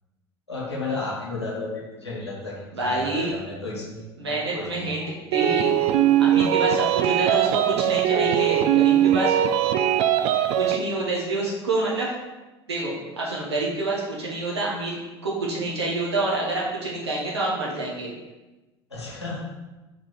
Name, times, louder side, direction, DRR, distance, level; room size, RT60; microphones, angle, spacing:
voice 1, 0.5-5.1 18.9-19.4, left 3 dB, 85° left, -5 dB, 1.6 m, -33 dB
voice 2, 2.7-3.3 4.2-5.0 5.3-5.7 6.2-9.3 10.5-12.1 12.7-18.1, right 2 dB, 75° right, -4 dB, 1.6 m, -27 dB
sound 1, 5.3-10.8, right 11 dB, 45° right, 0.4 m, -20 dB
4.6 x 4.0 x 5.0 m, 1.1 s
figure-of-eight pair, 70°, 14 cm